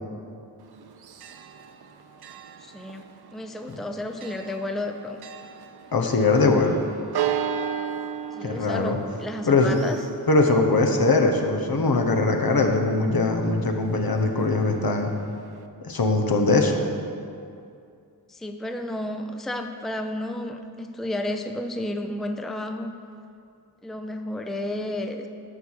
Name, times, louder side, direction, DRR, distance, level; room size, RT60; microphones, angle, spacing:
Church bell, 0.6-15.7, right 8 dB, 70° right, 0.6 m, -37 dB
voice 1, 2.6-3.0 3.3-5.2 8.3-10.0 18.3-22.9 23.8-25.3, left 1 dB, ahead, 6 dB, 0.5 m, -32 dB
voice 2, 5.9-6.8 8.4-9.0 9.5-9.8 10.3-15.1 15.8-16.8, left 3 dB, 65° left, 3 dB, 1.1 m, -21 dB
10.5 x 4.7 x 7.3 m, 2.4 s
wide cardioid pair, 60°, 39 cm